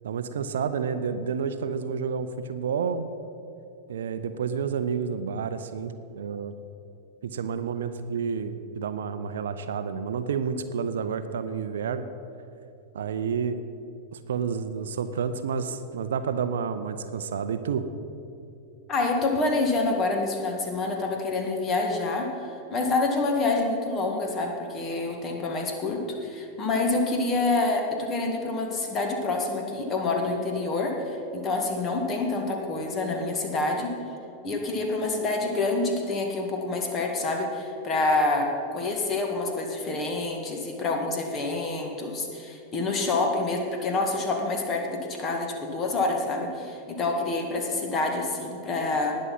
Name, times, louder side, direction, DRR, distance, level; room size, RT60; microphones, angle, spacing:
voice 1, 0.0-3.1 3.9-6.5 7.2-12.0 12.9-13.6 14.1-17.9, right 6 dB, 65° right, 11 dB, 0.6 m, -30 dB
voice 2, 18.9-33.9 34.4-49.2, left 3 dB, 25° left, 2 dB, 2.0 m, -27 dB
19.0 x 6.4 x 5.6 m, 2.7 s
figure-of-eight pair, 90°, 0 cm